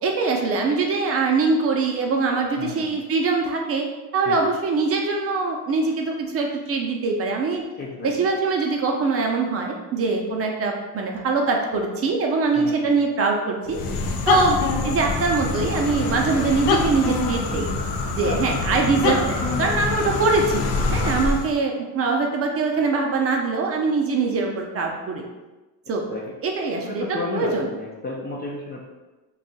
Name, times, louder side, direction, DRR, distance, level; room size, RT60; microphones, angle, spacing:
voice 1, 0.0-3.9 4.1-7.6 8.0-13.8 14.3-14.6 14.8-17.7 18.1-25.2 25.9-26.0 26.4-27.7, right 4 dB, 35° right, 1 dB, 0.5 m, -23 dB
voice 2, 2.6-3.0 4.3-4.4 7.8-8.3 12.5-13.0 14.3-14.4 18.2-18.4 19.9-20.1 21.1-21.2 26.1-26.3 26.8-28.9, left 3 dB, 25° left, -1 dB, 0.4 m, -33 dB
sound 1, 13.7-21.5, left 3 dB, 75° left, 0.6 m, -25 dB
2.6 x 2.3 x 3.8 m, 1.2 s
supercardioid pair, 100°, 41 cm